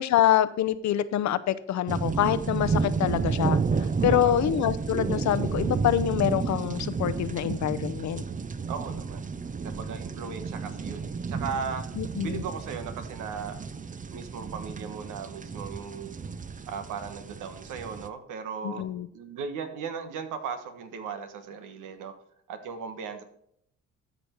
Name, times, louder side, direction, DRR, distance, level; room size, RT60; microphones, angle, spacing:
voice 1, 0.0-3.6 4.0-8.2 12.0-12.4 18.6-19.1, left 11 dB, 65° left, 15 dB, 0.7 m, -25 dB
sound 1, 1.9-18.1, right 5 dB, 25° right, 0.6 m, -31 dB
voice 2, 4.1-4.4 8.7-9.3 9.6-11.9 12.2-13.6 14.1-16.2 16.7-18.9 19.1-22.1 22.5-23.2, right 6 dB, 85° right, 8 dB, 1.4 m, -37 dB
13.0 x 5.2 x 4.5 m, 0.69 s
cardioid pair, 90°, 30 cm